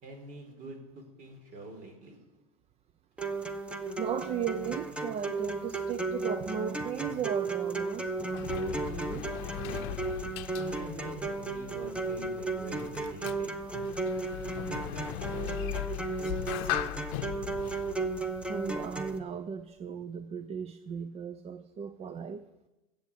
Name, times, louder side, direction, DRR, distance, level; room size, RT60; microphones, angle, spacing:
voice 1, 0.0-2.2 10.6-14.5 14.9-15.6 16.2-16.7, right 2 dB, 50° right, 5 dB, 4.1 m, -46 dB
sound 1, 3.2-19.2, right 3 dB, 5° right, 1.1 m, -35 dB
voice 2, 4.0-9.3 18.5-22.5, right 7 dB, 35° right, 12 dB, 0.7 m, -36 dB
Sliding door, 7.8-19.2, left 16 dB, 65° left, 0.7 m, -39 dB
14.5 x 7.9 x 8.3 m, 1.1 s
supercardioid pair, 100°, 19 cm